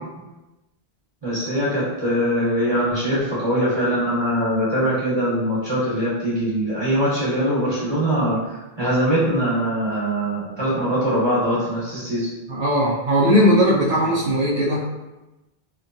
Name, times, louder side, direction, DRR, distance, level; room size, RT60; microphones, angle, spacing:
voice 1, 1.2-12.3, equal, 25° right, -9 dB, 1.0 m, -22 dB
voice 2, 12.5-14.9, equal, 70° right, -8 dB, 0.7 m, -18 dB
2.8 x 2.2 x 2.6 m, 1.1 s
omnidirectional pair, 1.0 m